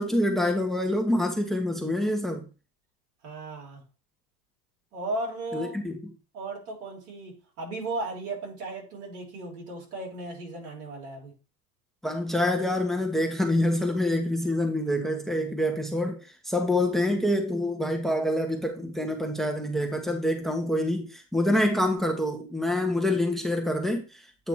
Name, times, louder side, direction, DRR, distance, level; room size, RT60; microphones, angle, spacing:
voice 1, 0.0-2.5 5.5-6.1 12.0-24.5, left 1 dB, ahead, 1.1 m, -26 dB
voice 2, 3.2-3.8 4.9-5.8 6.3-11.3, right 2 dB, 80° right, 3.3 m, -36 dB
8.8 x 2.9 x 4.6 m
supercardioid pair, 105°, 44 cm